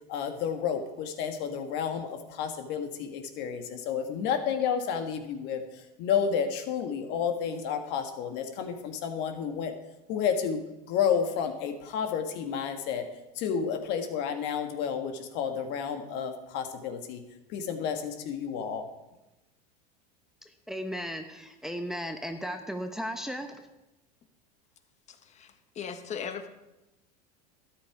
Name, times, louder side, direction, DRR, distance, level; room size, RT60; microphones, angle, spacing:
voice 1, 0.1-9.7 10.1-10.6 10.9-13.1 13.3-17.2 17.5-18.9, left 7 dB, 60° left, 6 dB, 1.7 m, -31 dB
voice 2, 20.7-23.6, equal, ahead, 5 dB, 1.0 m, -35 dB
voice 3, 25.1-26.5, left 7 dB, 35° left, 8 dB, 1.5 m, -38 dB
12.5 x 10.5 x 4.8 m, 0.98 s
hypercardioid pair, 100°, 20 cm